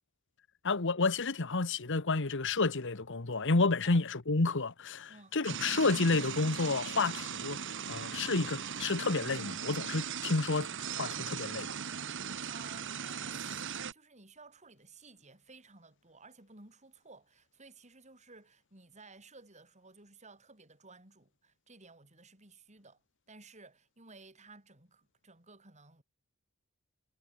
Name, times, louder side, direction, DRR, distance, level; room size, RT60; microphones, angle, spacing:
voice 1, 0.6-7.6 7.9-11.7, left 3 dB, 55° left, 1.3 m, -30 dB
sound 1, 5.4-13.9, right 7 dB, 55° right, 1.9 m, -39 dB
voice 2, 12.5-23.0 23.3-26.0, right 3 dB, 30° right, 7.6 m, -56 dB
head